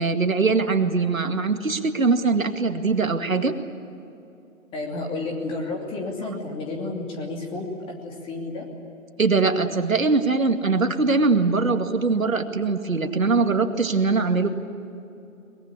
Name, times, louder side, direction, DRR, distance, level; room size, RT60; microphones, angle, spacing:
voice 1, 0.0-3.5 9.2-14.5, right 4 dB, 75° right, 7 dB, 2.2 m, -22 dB
voice 2, 4.7-8.7, left 2 dB, 15° left, 1 dB, 2.9 m, -31 dB
23.0 x 21.0 x 9.8 m, 2.8 s
figure-of-eight pair, 140°, 41 cm